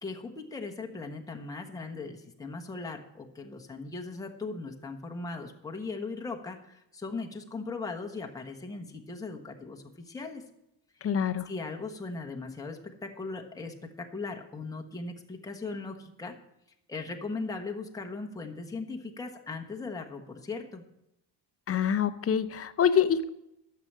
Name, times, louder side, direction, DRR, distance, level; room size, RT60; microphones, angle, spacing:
voice 1, 0.0-10.4 11.0-11.1 11.5-16.4 16.9-20.8, left 3 dB, 10° left, 2 dB, 1.1 m, -38 dB
voice 2, 11.0-11.5 21.7-23.3, left 8 dB, 30° left, 12 dB, 0.6 m, -25 dB
12.0 x 6.8 x 7.3 m, 0.83 s
cardioid pair, 160°, 47 cm